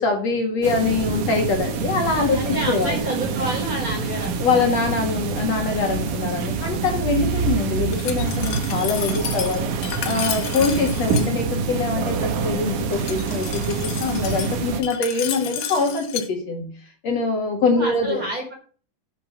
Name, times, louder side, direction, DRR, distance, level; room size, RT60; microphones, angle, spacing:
voice 1, 0.0-3.0 4.4-9.7 10.0-16.7 17.0-18.2, left 4 dB, 55° left, 2 dB, 3.1 m, -23 dB
sound 1, 0.6-14.8, right 5 dB, 75° right, 2.9 m, -26 dB
voice 2, 2.3-4.9 17.7-18.5, equal, 25° right, 1 dB, 4.4 m, -29 dB
Glass, 7.9-11.3 12.9-16.3, left 9 dB, 85° left, 2.9 m, -32 dB
8.9 x 7.6 x 7.3 m, 0.41 s
omnidirectional pair, 3.7 m